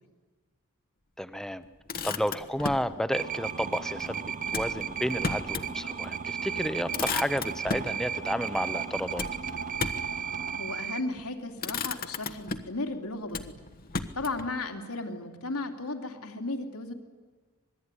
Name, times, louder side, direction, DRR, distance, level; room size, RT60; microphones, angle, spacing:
voice 1, 1.2-1.6 2.0-4.2 4.5-9.2, equal, ahead, 12 dB, 1.0 m, -31 dB
Motor vehicle (road), 1.6-2.9 4.5-5.7 6.1-6.2 6.6-8.0 9.2-10.2 11.0-11.3 11.6-12.8 13.3-14.5, left 4 dB, 40° left, 1.3 m, -35 dB
sound 1, 3.1-11.0, right 7 dB, 40° right, 1.2 m, -34 dB
voice 2, 10.6-13.7 14.1-16.9, left 2 dB, 75° left, 4 dB, 2.9 m, -35 dB
26.0 x 21.0 x 9.9 m, 1.4 s
head